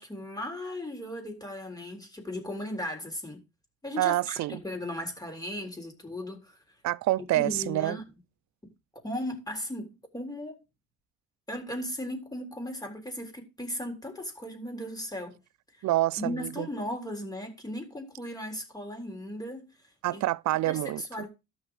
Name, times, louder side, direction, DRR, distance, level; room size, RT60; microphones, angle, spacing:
voice 1, 0.0-3.4 3.8-6.6 7.3-8.1 9.0-10.6 11.5-15.4 16.2-19.7 20.1-20.2 20.7-21.3, left 1 dB, 10° left, 3.8 m, -37 dB
voice 2, 4.0-4.6 6.8-8.0 15.8-16.7 20.0-21.3, right 16 dB, 70° right, 0.5 m, -27 dB
13.0 x 6.2 x 4.8 m
cardioid pair, 90°, 30 cm